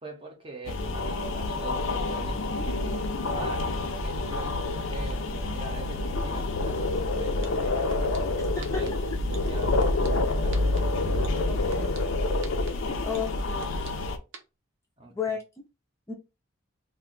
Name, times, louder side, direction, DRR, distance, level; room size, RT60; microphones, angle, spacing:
voice 1, 0.0-3.0 3.3-8.9 9.3-10.9 12.9-13.1 15.0-15.2, right 3 dB, 25° right, 0.6 m, -43 dB
sound 1, 0.7-14.2, left 2 dB, 65° left, 0.5 m, -28 dB
sound 2, 7.0-7.1 7.4-8.2 8.6-8.9 9.3-10.1 10.5-10.8 11.2-12.0 12.4-12.7 13.1-13.9 14.3-14.4, right 4 dB, 65° right, 0.7 m, -42 dB
voice 2, 11.5-11.9 13.0-13.9 15.1-15.4 16.1-16.2, left 7 dB, 15° left, 0.4 m, -33 dB
2.5 x 2.2 x 3.7 m
head